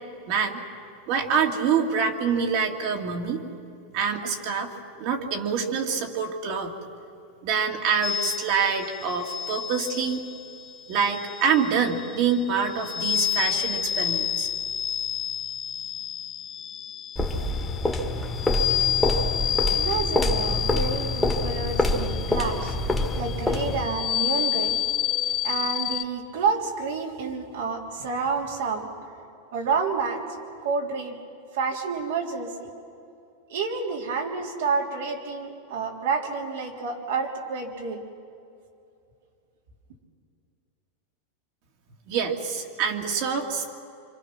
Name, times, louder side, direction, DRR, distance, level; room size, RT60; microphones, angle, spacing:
voice 1, 0.3-0.6 1.1-3.4 3.9-4.7 5.0-6.7 7.4-10.2 10.9-14.5 42.1-43.7, right 6 dB, 50° right, 2 dB, 2.6 m, -26 dB
sound 1, 8.0-26.0, left 10 dB, 25° left, 0.6 m, -30 dB
sound 2, 17.2-24.0, left 2 dB, 5° left, 1.9 m, -26 dB
voice 2, 19.7-24.8 25.4-28.9 29.5-30.2 30.6-31.2 31.5-32.7 33.5-38.0, right 5 dB, 75° right, 1 dB, 3.5 m, -29 dB
26.5 x 25.0 x 6.0 m, 2.6 s
supercardioid pair, 140°, 0 cm